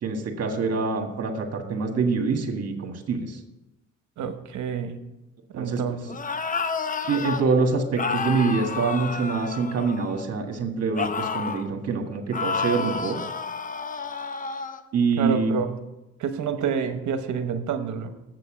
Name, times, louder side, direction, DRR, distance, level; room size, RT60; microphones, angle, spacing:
voice 1, 0.0-3.4 5.5-5.8 7.1-13.2 14.9-15.5, right 4 dB, 55° right, 4 dB, 1.7 m, -25 dB
voice 2, 4.2-5.0 5.5-6.0 15.2-15.8 16.2-18.1, right 6 dB, 70° right, 8 dB, 1.0 m, -28 dB
sound 1, 6.1-7.4 8.0-10.2 10.9-11.7 12.3-14.8, left 5 dB, 25° left, 0.7 m, -30 dB
7.7 x 6.7 x 6.3 m, 0.98 s
cardioid pair, 90°, 30 cm